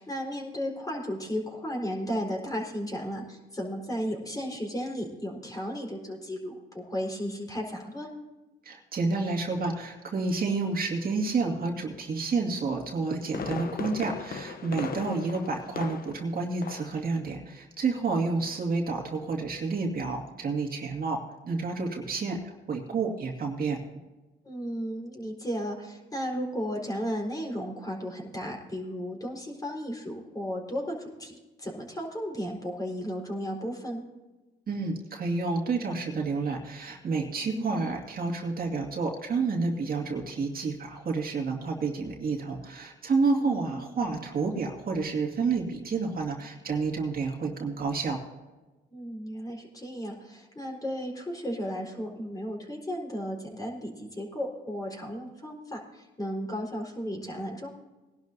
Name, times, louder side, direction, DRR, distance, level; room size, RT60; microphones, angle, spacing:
voice 1, 0.0-8.1 24.4-34.0 37.4-37.9 43.3-43.9 48.9-57.7, equal, 20° left, -1 dB, 4.3 m, -34 dB
voice 2, 8.6-21.2 21.4-23.8 34.7-48.2, right 4 dB, 45° right, 0 dB, 2.2 m, -29 dB
Fireworks, 13.1-16.3 16.6-17.0 17.3-17.4, left 5 dB, 50° left, 1.0 m, -37 dB
20.5 x 11.5 x 2.7 m, 1.2 s
cardioid pair, 90°, 20 cm